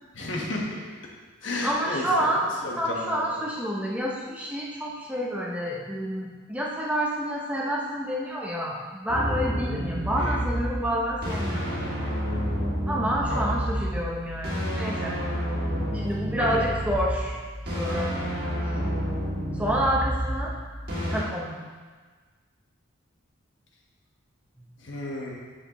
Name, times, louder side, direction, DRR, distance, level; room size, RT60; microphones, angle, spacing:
voice 1, 0.1-0.8 1.4-2.0 2.6-3.2 10.2-10.4 13.3-13.4 16.4-16.6 24.8-25.3, left 2 dB, 60° left, -1 dB, 1.2 m, -32 dB
voice 2, 1.6-11.8 12.9-15.2 15.9-18.1 19.5-20.6 21.1-21.6 24.6-24.7, equal, 5° right, -3 dB, 0.7 m, -29 dB
sound 1, 9.1-21.2, equal, 45° right, 1.5 m, -29 dB
8.3 x 6.5 x 3.0 m, 1.5 s
head